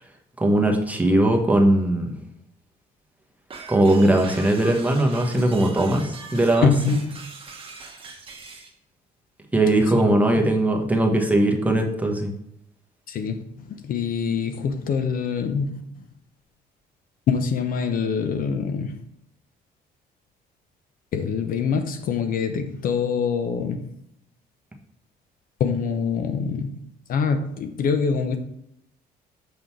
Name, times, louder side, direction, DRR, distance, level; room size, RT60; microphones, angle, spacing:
voice 1, 0.4-2.1 3.7-6.7 9.5-12.3, right 1 dB, 10° right, 2 dB, 1.2 m, -19 dB
sound 1, 3.5-8.7, right 4 dB, 30° right, 1.2 m, -41 dB
voice 2, 6.6-7.2 10.0-10.4 13.1-13.4 13.7-15.8 17.3-19.0 21.1-23.9 25.6-26.8 27.1-28.4, left 6 dB, 55° left, 8 dB, 0.7 m, -25 dB
7.0 x 3.9 x 4.6 m, 0.78 s
cardioid pair, 110°, 17 cm